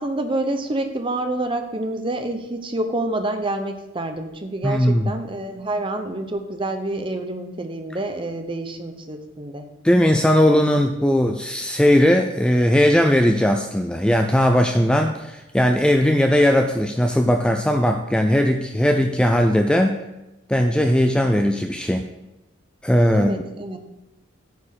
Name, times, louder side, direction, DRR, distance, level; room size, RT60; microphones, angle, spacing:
voice 1, 0.0-9.7 23.1-23.8, right 2 dB, 25° right, 6 dB, 0.8 m, -27 dB
voice 2, 4.6-5.1 9.8-20.0 20.5-22.0 22.8-23.4, equal, 5° left, 5 dB, 0.4 m, -18 dB
9.5 x 4.4 x 7.4 m, 0.97 s
head